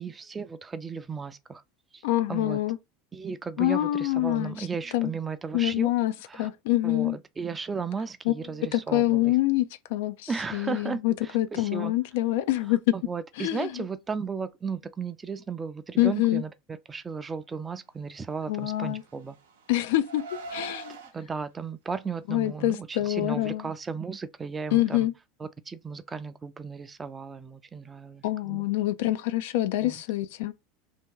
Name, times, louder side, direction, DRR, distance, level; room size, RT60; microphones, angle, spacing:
voice 1, 0.0-1.6 1.9-2.0 2.3-2.6 3.1-5.9 6.3-6.5 6.8-9.4 10.3-11.9 12.9-19.4 21.1-25.1 25.4-28.7 29.8-30.0, right 5 dB, 20° right, 0.4 m, -35 dB
voice 2, 2.0-2.8 3.6-4.7 4.9-5.1 5.5-6.1 6.4-7.2 8.3-8.4 8.7-13.0 13.4-13.8 16.0-16.4 18.5-19.0 19.7-21.0 22.3-23.7 24.7-25.1 28.2-30.5, left 15 dB, 70° left, 0.3 m, -26 dB
Car, 18.6-21.1, right 4 dB, 85° right, 0.6 m, -42 dB
2.7 x 2.2 x 3.6 m
hypercardioid pair, 85°, 0 cm